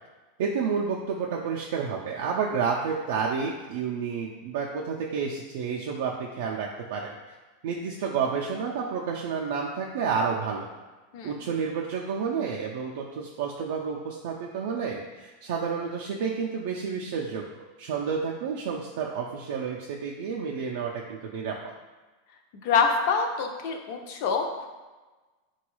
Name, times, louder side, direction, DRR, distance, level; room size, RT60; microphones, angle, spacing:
voice 1, 0.4-7.3 7.6-10.7 11.2-21.7, right 6 dB, 65° right, -2 dB, 0.3 m, -30 dB
voice 2, 11.1-11.4 22.6-24.7, left 5 dB, 50° left, 4 dB, 0.4 m, -26 dB
3.9 x 2.3 x 3.0 m, 1.2 s
supercardioid pair, 170°, 0 cm